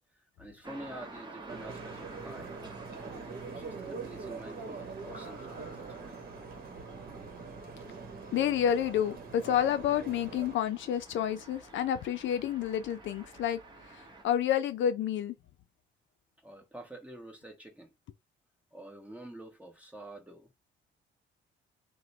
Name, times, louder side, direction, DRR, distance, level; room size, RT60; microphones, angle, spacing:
voice 1, 0.1-6.2 16.4-17.9 18.7-20.5, right 1 dB, 5° right, 1.2 m, -48 dB
sound 1, 0.6-14.2, right 2 dB, 20° right, 1.0 m, -51 dB
sound 2, 1.5-10.6, right 4 dB, 50° right, 1.1 m, -43 dB
voice 2, 8.3-13.6 14.2-15.3, left 10 dB, 70° left, 0.5 m, -29 dB
3.0 x 2.2 x 4.0 m
cardioid pair, 90°, 20 cm